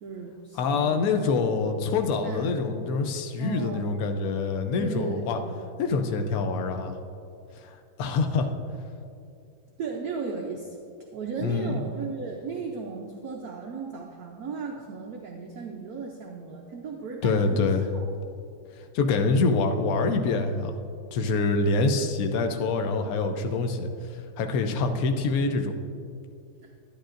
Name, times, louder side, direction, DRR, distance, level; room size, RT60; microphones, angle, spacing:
voice 1, 0.0-1.1 2.0-2.6 3.4-4.0 4.8-5.6 5.9-6.0 9.8-10.8 11.1-18.1 26.6-26.7, right 5 dB, 70° right, 1 dB, 0.9 m, -36 dB
voice 2, 0.6-5.4 5.8-7.0 7.6-8.5 11.4-11.8 17.2-17.9 18.9-20.7 21.1-23.9 24.4-25.7, left 4 dB, 75° left, 5 dB, 0.8 m, -25 dB
11.5 x 10.5 x 2.5 m, 2.4 s
omnidirectional pair, 2.3 m